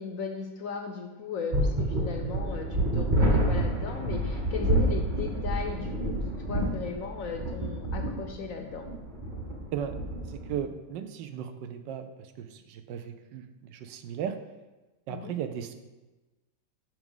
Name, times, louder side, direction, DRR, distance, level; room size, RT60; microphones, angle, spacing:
voice 1, 0.0-6.1 6.5-8.9 15.1-15.3, left 5 dB, 65° left, 3 dB, 0.8 m, -37 dB
sound 1, 1.5-10.5, right 1 dB, 30° right, 1.0 m, -28 dB
voice 2, 10.3-12.1 12.4-14.4 15.1-15.7, right 9 dB, 80° right, 9 dB, 1.3 m, -36 dB
6.0 x 5.2 x 5.4 m, 1.1 s
omnidirectional pair, 1.9 m